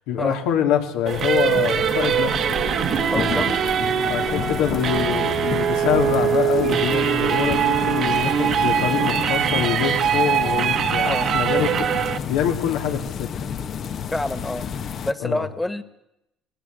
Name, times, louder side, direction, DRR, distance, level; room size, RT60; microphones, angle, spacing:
voice 1, 0.1-2.6 4.1-11.9 12.3-13.3 15.2-15.4, left 8 dB, 90° left, 4 dB, 2.9 m, -25 dB
sound 1, 1.1-15.1, left 7 dB, 55° left, 1.1 m, -31 dB
sound 2, 1.1-12.2, right 9 dB, 55° right, 1.5 m, -22 dB
voice 2, 3.1-3.5 7.4-7.6 11.0-11.3 14.1-14.7 15.0-15.8, left 1 dB, 10° left, 13 dB, 1.7 m, -27 dB
19.0 x 19.0 x 8.0 m, 0.86 s
supercardioid pair, 90°, 0 cm